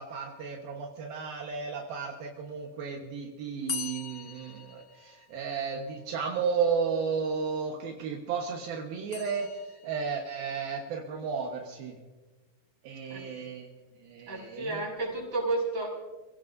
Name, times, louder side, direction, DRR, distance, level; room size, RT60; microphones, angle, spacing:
voice 1, 0.0-9.5 9.8-12.0 12.8-13.7 14.0-14.8, right 6 dB, 75° right, 0 dB, 3.1 m, -33 dB
sound 1, 3.7-5.7 9.1-10.2, left 7 dB, 60° left, 1.5 m, -40 dB
voice 2, 14.3-15.9, right 2 dB, 25° right, -3 dB, 6.5 m, -31 dB
29.0 x 16.5 x 2.7 m, 1.2 s
omnidirectional pair, 4.3 m